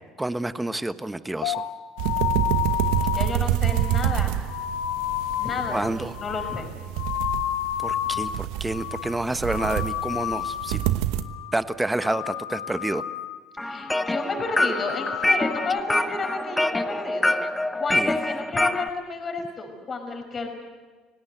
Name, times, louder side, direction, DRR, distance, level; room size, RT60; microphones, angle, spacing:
voice 1, 0.2-1.6 5.7-6.2 7.8-10.8 11.5-13.0 17.9-18.2, right 1 dB, 10° right, 12 dB, 1.3 m, -28 dB
sound 1, 1.4-8.4 8.7-9.2 9.4-10.9 11.2-11.6 11.9-13.4 13.7-14.1 14.4-15.8, left 12 dB, 75° left, 1.3 m, -31 dB
sound 2, 2.0-11.2, right 13 dB, 75° right, 1.1 m, -27 dB
voice 2, 3.1-4.3 5.3-6.7 13.6-17.4 17.8-20.5, left 3 dB, 35° left, 5 dB, 5.7 m, -31 dB
sound 3, 13.6-18.9, left 1 dB, 10° left, 1.0 m, -25 dB
29.5 x 17.5 x 8.2 m, 1.3 s
hypercardioid pair, 70°, 0 cm